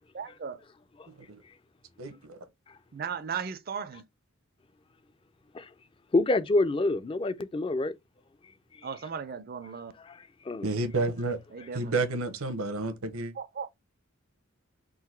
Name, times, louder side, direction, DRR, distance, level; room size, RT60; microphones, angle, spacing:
voice 1, 0.1-0.6 2.9-4.0 8.8-9.9 11.5-12.0 13.4-13.7, right 6 dB, 45° right, 0.4 m, -36 dB
voice 2, 1.1-1.4 2.0-2.4 10.6-11.4 11.7-13.3, right 3 dB, 85° right, 0.9 m, -30 dB
voice 3, 6.1-7.9 10.5-10.6, left 2 dB, 25° left, 0.3 m, -26 dB
3.9 x 2.6 x 4.3 m
head